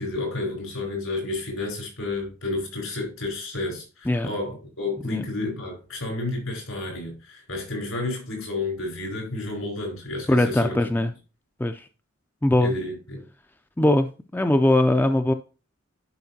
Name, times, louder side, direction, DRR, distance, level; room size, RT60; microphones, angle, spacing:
voice 1, 0.0-11.0 12.6-13.2, left 2 dB, 75° left, 4.4 m, -31 dB
voice 2, 10.3-11.1 11.6-11.8 12.4-12.7 13.8-14.1 14.3-15.3, left 1 dB, 10° left, 0.3 m, -20 dB
11.0 x 5.0 x 2.7 m
head